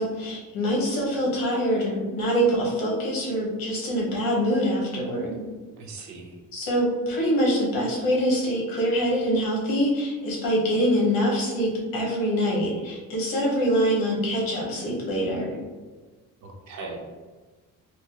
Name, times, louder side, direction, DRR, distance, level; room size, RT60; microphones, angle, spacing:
voice 1, 0.0-5.4 6.5-15.6, equal, 90° left, -3 dB, 1.3 m, -24 dB
voice 2, 5.8-6.4 16.4-17.0, right 3 dB, 55° right, 1 dB, 0.8 m, -39 dB
4.5 x 2.1 x 2.9 m, 1.3 s
cardioid pair, 155°, 34 cm